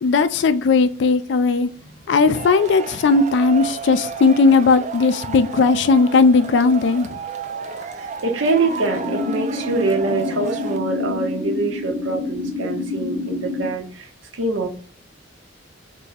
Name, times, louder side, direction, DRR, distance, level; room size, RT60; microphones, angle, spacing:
voice 1, 0.0-1.7 2.1-7.2, left 4 dB, 60° left, 0.3 m, -17 dB
Male speech man speaking / Shout / Clapping, 2.3-10.8, right 6 dB, 35° right, 0.3 m, -32 dB
voice 2, 7.9-14.8, right 3 dB, 75° right, 0.6 m, -24 dB
sound 1, 8.6-13.6, left 3 dB, 25° left, 1.0 m, -28 dB
3.6 x 2.0 x 4.1 m
head